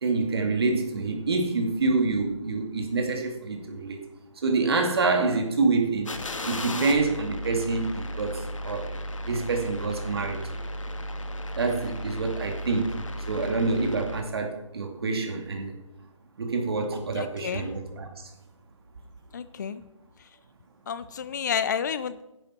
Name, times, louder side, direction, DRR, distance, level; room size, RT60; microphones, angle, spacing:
voice 1, 0.0-4.0 4.4-6.1 6.4-8.9 9.3-10.4 11.6-13.0 13.3-15.8 16.4-18.1, right 3 dB, 50° right, 3 dB, 2.4 m, -27 dB
sound 1, 6.1-14.2, equal, 75° left, 1.8 m, -35 dB
voice 2, 17.2-17.8 19.3-19.8 20.9-22.2, left 7 dB, 35° left, 14 dB, 0.5 m, -30 dB
13.0 x 10.5 x 4.3 m, 0.96 s
figure-of-eight pair, 155°, 17 cm